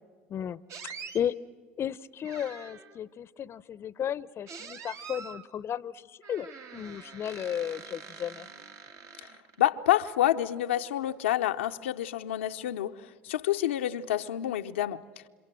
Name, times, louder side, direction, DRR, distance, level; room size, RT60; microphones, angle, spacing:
voice 1, 0.3-1.3 1.8-8.5, left 9 dB, 40° left, 0.7 m, -34 dB
sound 1, 0.7-1.2 2.2-3.0 4.5-5.4 6.2-9.7, right 5 dB, 50° right, 2.0 m, -45 dB
voice 2, 9.6-15.0, left 13 dB, 85° left, 0.7 m, -28 dB
29.0 x 26.0 x 7.6 m
hypercardioid pair, 80°, 6 cm